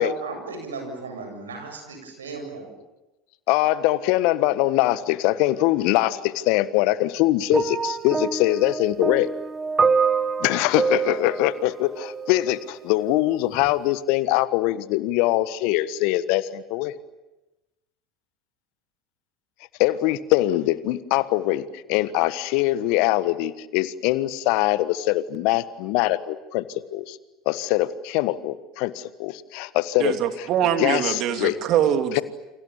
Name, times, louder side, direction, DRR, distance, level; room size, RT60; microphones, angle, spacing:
voice 1, 0.0-2.7, right 3 dB, 80° right, 4 dB, 7.6 m, -35 dB
voice 2, 3.5-9.3 10.4-17.0 19.8-27.2 27.4-30.1 30.8-31.5 32.1-32.2, left 16 dB, 60° left, 15 dB, 1.4 m, -23 dB
sound 1, 7.5-12.6 13.5-13.7, right 5 dB, 25° right, 1.4 m, -26 dB
voice 3, 30.0-32.2, right 9 dB, 50° right, 7 dB, 2.8 m, -23 dB
29.5 x 27.0 x 7.2 m, 1.0 s
figure-of-eight pair, 70°, 0 cm